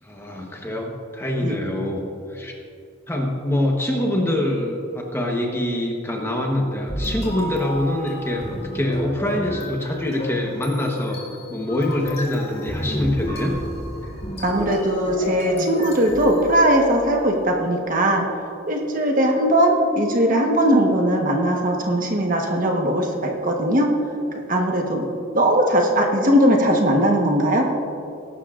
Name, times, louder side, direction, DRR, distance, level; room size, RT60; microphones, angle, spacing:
voice 1, 0.0-2.0 2.3-2.5 3.1-13.5, left 1 dB, 10° left, 0 dB, 1.1 m, -24 dB
sound 1, 6.9-17.2, equal, 30° left, 2.8 m, -32 dB
voice 2, 14.4-18.3 18.7-23.9 24.5-25.1 25.3-27.7, right 1 dB, 40° right, 1 dB, 1.2 m, -19 dB
21.0 x 11.5 x 2.5 m, 2.6 s
head